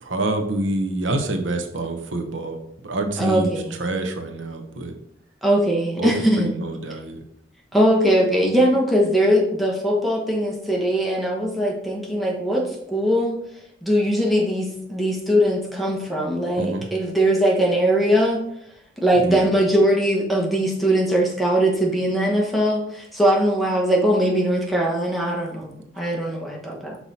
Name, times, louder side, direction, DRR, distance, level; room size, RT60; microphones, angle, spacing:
voice 1, 0.0-2.6 2.8-4.9 6.0-7.2 16.6-16.9 19.1-19.5, right 2 dB, 75° right, 6 dB, 0.8 m, -26 dB
voice 2, 3.2-3.8 5.4-6.5 7.7-13.4 13.8-18.4 19.0-27.0, equal, ahead, -2 dB, 1.1 m, -21 dB
5.6 x 4.4 x 4.1 m, 0.76 s
head